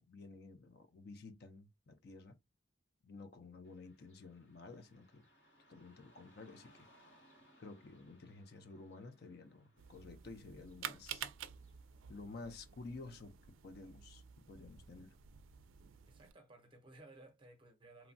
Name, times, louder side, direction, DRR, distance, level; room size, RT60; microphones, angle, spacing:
voice 1, 0.0-2.4 3.0-5.3 5.7-6.9 7.6-11.3 12.1-13.3 13.6-15.2, left 3 dB, 55° left, 0.4 m, -52 dB
Car passing by / Traffic noise roadway noise, 3.6-12.7, equal, 75° left, 1.8 m, -69 dB
sound 1, 9.8-16.3, right 9 dB, 85° right, 0.4 m, -50 dB
voice 2, 16.1-18.1, right 2 dB, 25° right, 0.6 m, -58 dB
3.0 x 2.2 x 2.5 m
head